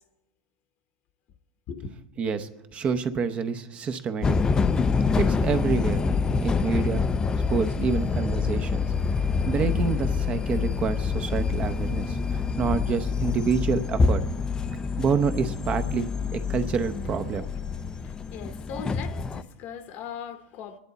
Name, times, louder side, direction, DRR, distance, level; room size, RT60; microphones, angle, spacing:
voice 1, 2.2-4.4 5.2-6.1 6.4-7.1 7.5-8.8 9.1-14.2 15.0-17.4, right 6 dB, 30° right, 0.7 m, -28 dB
sound 1, 4.2-19.4, left 5 dB, 20° left, 0.4 m, -26 dB
voice 2, 18.0-20.8, left 6 dB, 50° left, 1.0 m, -39 dB
22.5 x 10.5 x 4.0 m
supercardioid pair, 135°, 4 cm